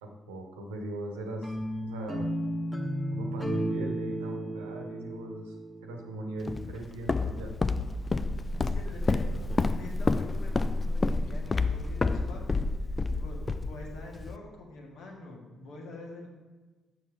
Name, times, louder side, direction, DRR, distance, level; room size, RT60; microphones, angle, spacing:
voice 1, 0.0-1.6 1.8-2.3 3.1-5.6 5.8-7.5, right 1 dB, 80° right, 2 dB, 1.0 m, -39 dB
sound 1, 1.4-6.5, right 1 dB, 15° left, 1.1 m, -34 dB
Walk footsteps, 6.5-14.4, left 3 dB, 30° left, 0.4 m, -29 dB
voice 2, 8.5-16.3, left 2 dB, 65° left, 0 dB, 1.6 m, -46 dB
7.2 x 6.2 x 4.7 m, 1.3 s
figure-of-eight pair, 45°, 0 cm